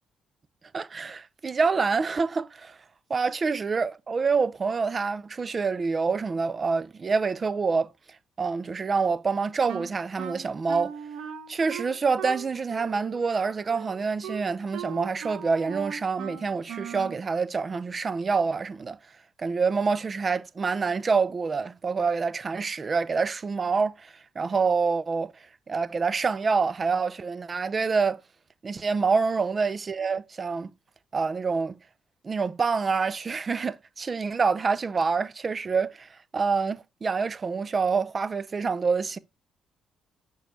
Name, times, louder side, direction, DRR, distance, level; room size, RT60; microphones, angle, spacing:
voice 1, 0.7-2.8 3.1-7.9 8.4-11.0 11.5-19.0 19.4-28.2 28.6-30.7 31.1-31.8 32.2-39.2, right 4 dB, 35° right, 0.6 m, -27 dB
Wind instrument woodwind instrument, 9.7-17.2, right 8 dB, 85° right, 1.1 m, -39 dB
6.5 x 4.5 x 5.1 m
cardioid pair, 90°, 0 cm